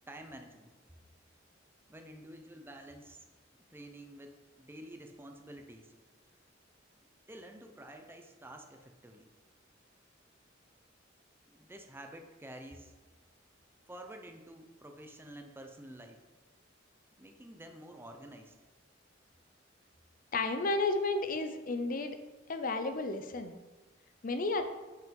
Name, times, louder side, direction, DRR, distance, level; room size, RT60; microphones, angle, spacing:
voice 1, 0.1-0.8 1.9-3.2 3.7-5.9 7.3-9.3 11.5-12.9 13.9-16.3 17.2-18.5, right 1 dB, 10° right, 5 dB, 0.7 m, -50 dB
voice 2, 20.3-22.2 22.5-23.5 24.2-24.7, left 3 dB, 45° left, 8 dB, 0.7 m, -32 dB
5.9 x 5.8 x 5.2 m, 1.2 s
head